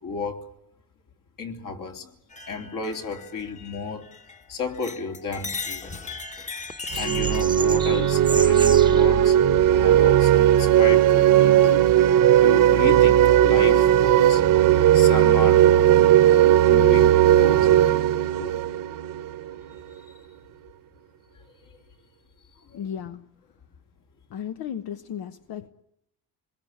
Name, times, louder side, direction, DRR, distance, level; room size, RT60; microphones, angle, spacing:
voice 1, 0.0-0.5 1.4-2.1 2.5-4.1 4.5-5.9 7.0-9.4 9.7-11.9 12.2-15.8 16.6-17.9 18.4-18.5 19.7-20.0 21.6-21.8 22.6-22.8, left 4 dB, 65° left, 3.6 m, -33 dB
sound 1, 2.3-4.4 4.7-7.4, left 5 dB, 20° left, 1.2 m, -37 dB
sound 2, 5.6-6.1 6.6-9.1 10.8-11.2, right 3 dB, 15° right, 0.9 m, -34 dB
sound 3, 6.9-19.6, right 11 dB, 65° right, 1.0 m, -17 dB
voice 2, 22.7-23.3 24.3-25.7, left 9 dB, 90° left, 1.1 m, -34 dB
26.5 x 21.5 x 9.4 m
cardioid pair, 135°, 35 cm